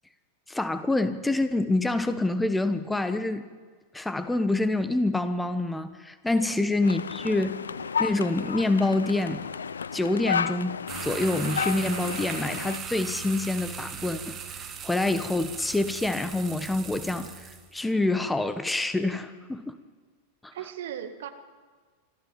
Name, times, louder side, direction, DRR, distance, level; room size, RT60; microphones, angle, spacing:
voice 1, 0.5-3.4 3.9-7.5 8.0-9.4 9.9-10.7 11.0-19.8 20.4-20.5, left 2 dB, 5° left, 11 dB, 1.1 m, -27 dB
sound 1, 6.8-12.8, left 6 dB, 70° left, 0.5 m, -32 dB
sound 2, 10.9-17.7, right 7 dB, 25° right, 2.3 m, -38 dB
voice 2, 20.5-21.3, right 10 dB, 60° right, 7 dB, 1.7 m, -37 dB
26.0 x 14.0 x 7.3 m, 1.5 s
figure-of-eight pair, 90°, 0 cm